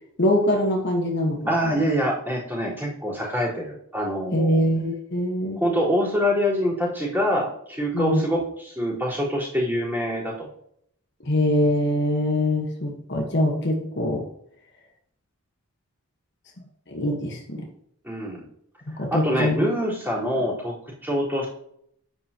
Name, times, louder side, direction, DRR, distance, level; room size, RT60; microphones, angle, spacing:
voice 1, 0.2-1.8 4.3-5.6 7.9-8.2 11.2-14.3 16.9-17.7 18.9-19.6, left 1 dB, 50° left, 0 dB, 1.5 m, -23 dB
voice 2, 1.5-4.6 5.6-10.5 18.0-18.4 19.1-21.5, equal, 10° right, -8 dB, 4.4 m, -25 dB
10.0 x 9.8 x 3.0 m, 0.71 s
head